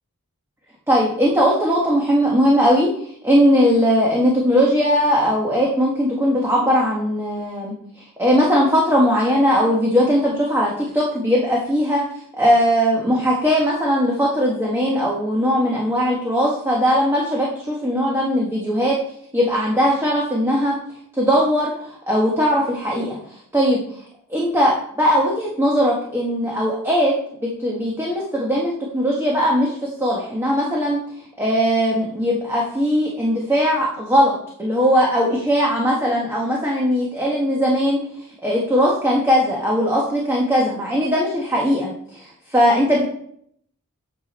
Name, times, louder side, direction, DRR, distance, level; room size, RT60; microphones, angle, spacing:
voice 1, 0.9-2.9 3.2-7.7 8.2-12.0 12.3-19.0 19.3-20.8 21.1-23.8 24.3-27.1 27.6-31.0 31.4-38.0 38.4-43.0, equal, 10° right, -3 dB, 1.4 m, -19 dB
8.4 x 6.9 x 4.2 m, 0.67 s
head